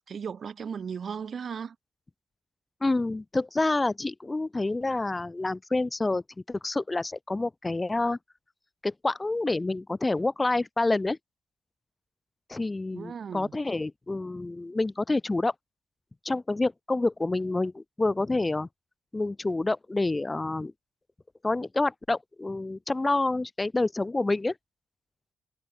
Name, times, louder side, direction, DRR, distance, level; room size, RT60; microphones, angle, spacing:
voice 1, 0.0-1.8 12.9-13.5, right 6 dB, 50° right, 7.1 m, -36 dB
voice 2, 2.8-8.2 8.8-11.2 12.5-15.5 16.2-18.7 19.1-20.7 21.4-24.5, left 2 dB, 20° left, 4.4 m, -28 dB
cardioid pair, 90°, 0 cm